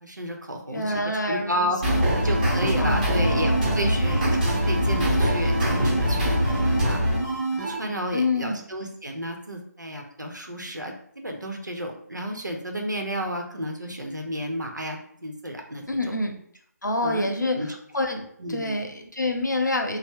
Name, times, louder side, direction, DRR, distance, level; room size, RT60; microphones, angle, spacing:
voice 1, 0.0-1.8 2.1-6.3 6.6-7.0 7.5-10.9 11.2-16.1 17.0-17.3 17.5-17.7 18.4-18.7, equal, 85° right, 2 dB, 0.7 m, -32 dB
voice 2, 0.7-2.0 2.8-4.0 8.1-8.6 15.9-16.4 16.8-17.7 17.9-20.0, left 2 dB, 85° left, 2 dB, 0.7 m, -27 dB
sound 1, 1.8-7.8, equal, 25° right, 0.8 m, -23 dB
2.9 x 2.0 x 3.6 m, 0.64 s
figure-of-eight pair, 155°, 10 cm